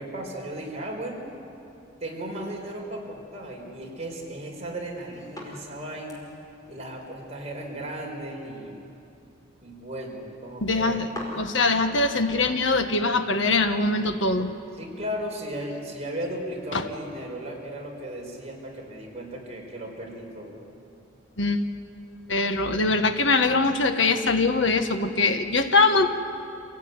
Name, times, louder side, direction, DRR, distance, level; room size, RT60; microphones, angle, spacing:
voice 1, 0.0-1.3 2.0-6.2 6.7-8.8 9.6-11.1 14.8-20.6, right 1 dB, 35° right, -1 dB, 4.9 m, -36 dB
sound 1, 4.8-11.8, left 1 dB, 20° left, 4.9 m, -46 dB
voice 2, 10.6-11.1 11.3-14.5 16.7-16.8 21.4-21.7 22.3-26.1, left 3 dB, 70° left, 7 dB, 1.6 m, -22 dB
26.5 x 17.0 x 9.7 m, 2.6 s
head